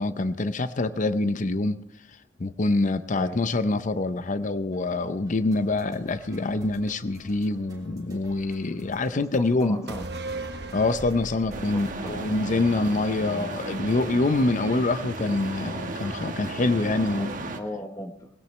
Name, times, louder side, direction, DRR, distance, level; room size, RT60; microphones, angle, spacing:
voice 1, 0.0-1.8 2.4-9.9 10.7-17.3, left 2 dB, 45° left, 12 dB, 0.6 m, -25 dB
sound 1, 4.7-13.3, right 1 dB, 20° right, 3.1 m, -53 dB
voice 2, 8.8-10.1 11.7-12.2 13.2-13.5 17.0-18.3, left 1 dB, 15° left, 5 dB, 1.1 m, -39 dB
sound 2, 9.9-13.5 13.8-13.9, right 2 dB, 60° right, 1.0 m, -37 dB
sound 3, 11.5-17.6, right 2 dB, 45° right, 1.3 m, -34 dB
20.0 x 16.5 x 3.2 m, 0.70 s
head